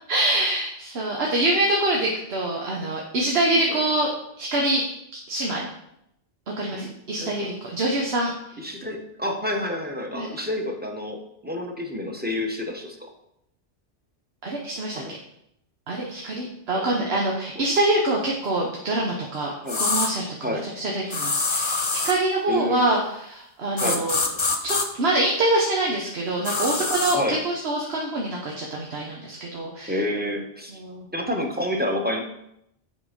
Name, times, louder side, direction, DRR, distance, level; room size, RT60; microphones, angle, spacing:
voice 1, 0.1-4.1 4.4-4.8 5.3-5.7 6.5-8.3 10.1-10.3 14.4-15.0 15.9-24.2 24.6-30.0 30.7-31.1, right 1 dB, 85° right, -1 dB, 1.3 m, -25 dB
voice 2, 7.2-7.5 8.6-13.1 14.9-15.1 16.7-17.2 19.6-19.8 20.4-20.7 21.0-21.1 22.5-22.8 23.8-24.0 27.1-27.4 29.9-30.8 31.1-32.2, left 1 dB, 10° right, 2 dB, 1.0 m, -29 dB
sound 1, 19.7-20.1 21.1-22.2 23.8-24.9 26.4-27.2, left 3 dB, 30° left, 0.8 m, -25 dB
7.6 x 5.1 x 5.0 m, 0.77 s
omnidirectional pair, 1.0 m